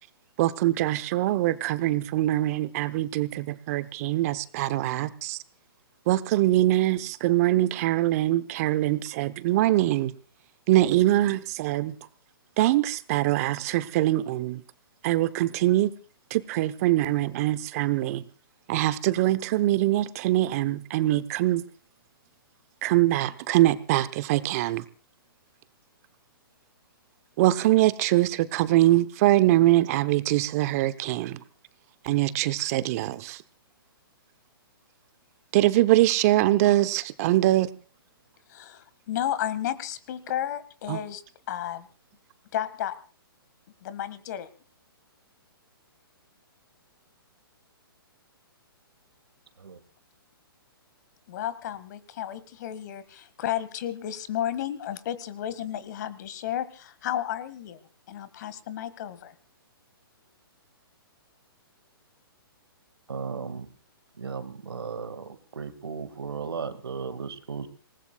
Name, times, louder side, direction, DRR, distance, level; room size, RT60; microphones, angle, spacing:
voice 1, 0.4-5.4 6.1-10.1 10.7-11.9 12.6-14.6 15.0-15.9 16.3-18.2 18.7-21.6 22.8-24.9 27.4-31.4 32.0-33.4 35.5-37.7 40.9-41.0, right 15 dB, 40° right, 0.9 m, -23 dB
voice 2, 38.5-41.2 41.5-41.9 42.5-42.9 43.8-44.5 51.3-57.8 58.1-59.4, left 11 dB, 50° left, 1.7 m, -32 dB
voice 3, 63.1-63.7 64.2-65.3 65.6-67.7, right 5 dB, 85° right, 2.0 m, -35 dB
26.5 x 19.0 x 2.3 m
hypercardioid pair, 135°, 13 cm